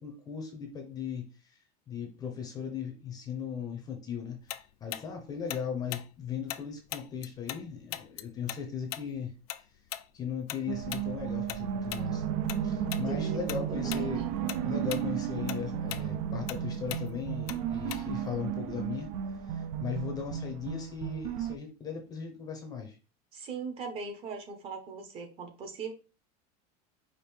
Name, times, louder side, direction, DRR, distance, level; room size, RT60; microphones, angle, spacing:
voice 1, 0.0-1.6 1.9-9.3 10.1-12.2 12.6-19.1 19.4-23.0, left 7 dB, 20° left, 3 dB, 0.7 m, -38 dB
Tick-tock, 4.5-7.6 7.9-12.6 12.9-13.1 13.5-14.1 14.4-18.3, left 14 dB, 85° left, 0.4 m, -40 dB
sound 1, 10.7-21.6, right 9 dB, 60° right, 0.5 m, -34 dB
voice 2, 13.1-14.1 23.3-25.9, right 4 dB, 30° right, 5 dB, 0.8 m, -40 dB
5.1 x 2.6 x 3.1 m, 0.32 s
supercardioid pair, 170°, 19 cm